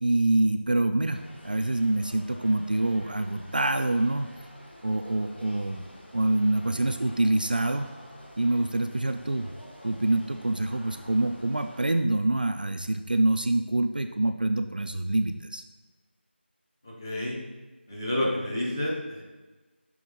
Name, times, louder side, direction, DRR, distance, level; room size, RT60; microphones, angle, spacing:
voice 1, 0.0-4.3 4.8-5.8 6.1-7.9 8.4-9.5 9.8-15.6, right 2 dB, 50° right, 7 dB, 0.4 m, -26 dB
sound 1, 1.1-11.9, equal, 60° left, 1.4 m, -49 dB
voice 2, 16.8-17.4 17.9-19.2, left 1 dB, 20° left, -4 dB, 0.9 m, -29 dB
6.1 x 3.6 x 5.3 m, 1.2 s
figure-of-eight pair, 175°, 6 cm